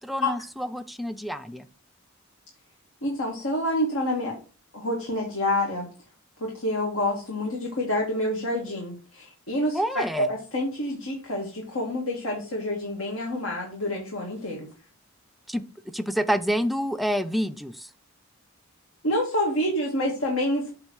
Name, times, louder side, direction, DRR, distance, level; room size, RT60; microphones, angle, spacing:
voice 1, 0.1-1.7 9.7-10.3 15.5-15.6 15.9-17.9, equal, ahead, 9 dB, 0.5 m, -28 dB
voice 2, 3.0-4.3 4.7-5.9 6.4-14.7 19.0-20.7, left 1 dB, 75° left, -2 dB, 2.1 m, -27 dB
8.6 x 3.3 x 6.4 m, 0.36 s
head